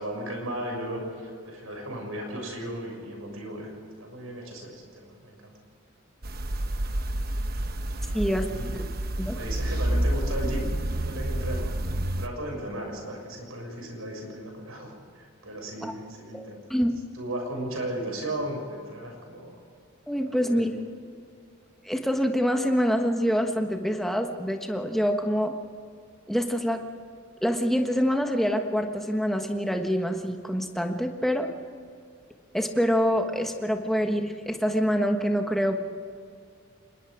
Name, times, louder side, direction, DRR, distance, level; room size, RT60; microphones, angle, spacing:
voice 1, 0.0-5.5 6.5-6.7 8.1-8.8 9.3-16.6 17.1-19.5 20.2-20.7, right 1 dB, 85° right, 2 dB, 6.4 m, -36 dB
sound 1, 6.2-12.3, right 1 dB, 45° right, 1.1 m, -29 dB
voice 2, 8.1-8.5 9.2-9.4 15.8-15.9 16.3-16.4 16.7-16.9 20.1-20.7 21.8-25.5 26.3-26.8 27.4-31.5 32.5-35.8, equal, ahead, 4 dB, 1.4 m, -25 dB
26.0 x 21.0 x 5.1 m, 2.3 s
head